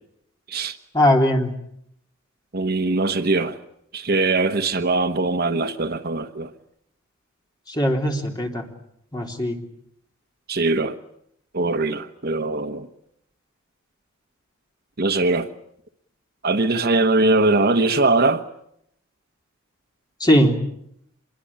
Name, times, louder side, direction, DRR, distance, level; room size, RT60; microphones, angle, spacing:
voice 1, 0.9-1.5 7.8-8.6 9.1-9.6 20.2-20.5, left 1 dB, 20° left, 3.5 m, -19 dB
voice 2, 2.5-3.6 3.9-6.5 10.5-11.0 11.5-12.9 15.0-15.5 16.4-18.4, right 3 dB, 50° right, 1.2 m, -21 dB
25.5 x 22.0 x 8.7 m
head